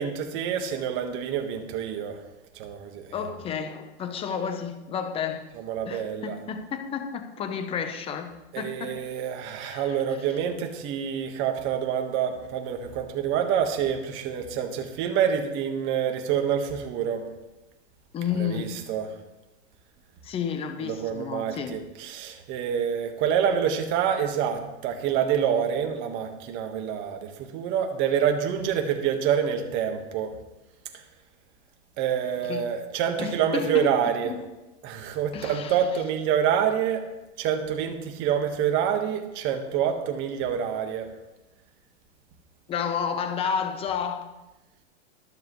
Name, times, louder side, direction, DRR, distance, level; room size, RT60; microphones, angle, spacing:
voice 1, 0.0-2.2 2.5-3.2 5.6-6.4 8.5-17.3 18.3-19.1 20.8-30.3 30.9-31.0 32.0-34.3 34.8-37.0 37.4-41.1, right 8 dB, 35° right, 5 dB, 1.4 m, -27 dB
voice 2, 3.1-5.4 5.9-8.3 8.6-8.9 9.6-10.2 18.1-18.7 20.2-21.8 32.4-32.6 33.2-33.9 34.2-34.3 35.3-35.8 42.7-44.3, left 7 dB, 15° left, 7 dB, 0.8 m, -31 dB
22.5 x 7.5 x 3.1 m, 1.0 s
supercardioid pair, 150°, 34 cm